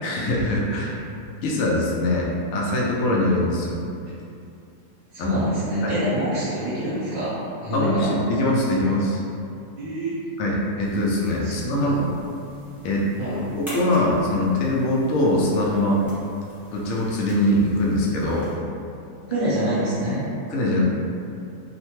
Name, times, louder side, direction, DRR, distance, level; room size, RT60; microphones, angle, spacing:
voice 1, 0.0-1.0 1.4-3.8 5.2-5.4 5.8-6.0 7.7-9.2 10.4-12.1 12.8-13.1 13.6-16.0 16.7-18.5 20.5-20.8, left 1 dB, 70° left, -4 dB, 0.9 m, -22 dB
voice 2, 5.1-8.1 9.8-10.1 11.4-11.9 13.2-13.4 19.3-20.2, equal, 45° right, -14 dB, 1.0 m, -26 dB
sound 1, 10.8-18.5, equal, ahead, 0.6 m, -44 dB
2.8 x 2.1 x 3.0 m, 2.6 s
omnidirectional pair, 1.6 m